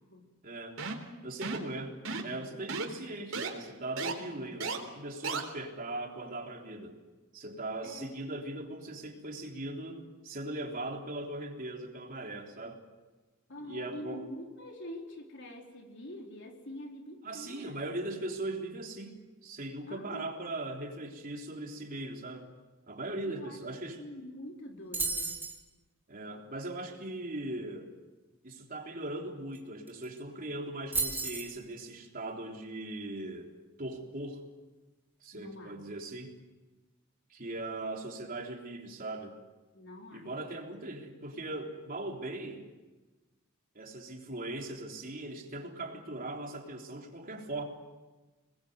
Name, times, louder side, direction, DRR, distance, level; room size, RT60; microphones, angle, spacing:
voice 1, 0.4-0.8 1.2-2.0 2.2-7.0 7.3-12.8 13.6-14.3 17.2-22.5 22.9-24.0 26.1-27.9 28.4-33.5 33.8-34.4 35.2-36.3 37.3-39.3 40.1-42.7 43.8-47.6, right 2 dB, 45° right, 1 dB, 3.6 m, -39 dB
sound 1, 0.8-1.1 1.4-1.7 2.0-2.4 2.7-2.9 3.3-3.5 4.0-4.1 4.6-4.8 5.2-5.4, right 4 dB, 90° right, 3.9 m, -34 dB
voice 2, 4.0-4.6 7.8-8.1 13.5-17.8 19.9-20.3 23.2-23.6 23.9-25.4 35.3-35.8 39.7-40.3, left 1 dB, 60° left, 1 dB, 4.1 m, -45 dB
sound 2, 24.9-25.6 29.5-29.6 29.9-30.2 30.9-31.5, right 3 dB, 10° right, 3.0 m, -33 dB
27.5 x 21.0 x 8.0 m, 1.2 s
head